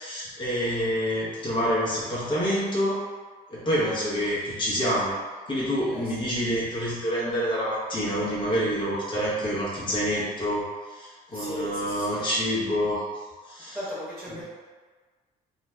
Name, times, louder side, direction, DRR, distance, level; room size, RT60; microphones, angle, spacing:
voice 1, 0.0-3.0 3.5-5.2 5.5-13.1 13.4-13.8, equal, 30° left, -8 dB, 0.9 m, -27 dB
voice 2, 5.9-6.2 11.3-12.3 13.7-14.4, left 1 dB, 5° left, -11 dB, 1.2 m, -37 dB
2.5 x 2.2 x 3.2 m, 1.5 s
cardioid pair, 110°, 17 cm